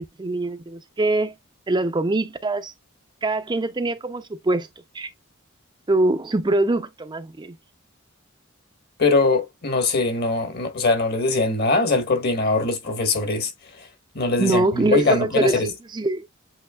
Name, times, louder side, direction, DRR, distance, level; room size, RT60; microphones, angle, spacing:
voice 1, 0.0-1.3 1.7-2.7 3.2-4.7 4.9-5.1 5.9-7.5 14.4-16.3, right 2 dB, 20° right, 0.5 m, -23 dB
voice 2, 9.0-13.5 13.8-13.9 14.1-15.7, left 3 dB, 50° left, 1.3 m, -22 dB
7.7 x 3.0 x 2.3 m
head